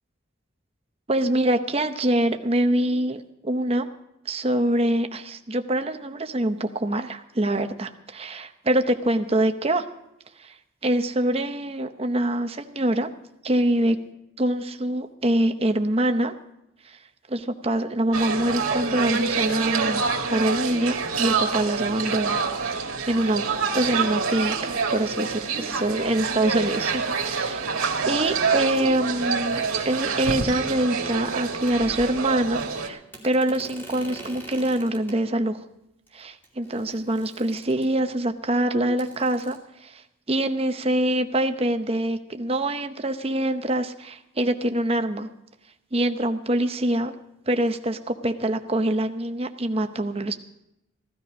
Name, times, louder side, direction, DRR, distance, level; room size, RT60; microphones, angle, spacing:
voice 1, 1.1-3.9 4.3-9.9 10.4-10.5 10.8-13.1 13.4-14.0 14.4-16.3 16.8-17.0 17.3-22.4 22.7-27.6 28.1-35.6 36.1-45.3 45.9-47.1 47.5-50.4, right 1 dB, 30° right, 7 dB, 0.8 m, -25 dB
sound 1, 18.1-32.9, right 5 dB, 85° right, 1.9 m, -26 dB
sound 2, 31.7-31.8 33.1-35.2 36.1-36.2 36.4-38.1 39.0-39.6, right 1 dB, 10° left, 2.6 m, -44 dB
15.5 x 12.5 x 5.1 m, 0.87 s
head